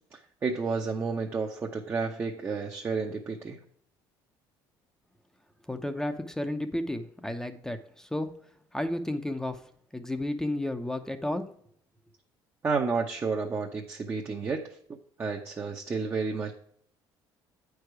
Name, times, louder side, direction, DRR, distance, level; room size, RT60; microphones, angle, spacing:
voice 1, 0.1-3.6 12.6-14.8 15.2-16.5, right 4 dB, 30° right, 0 dB, 0.8 m, -31 dB
voice 2, 5.7-8.3 8.7-9.6 9.9-11.5, left 1 dB, 5° left, 8 dB, 0.7 m, -32 dB
8.7 x 4.8 x 4.8 m, 0.63 s
cardioid pair, 115°, 9 cm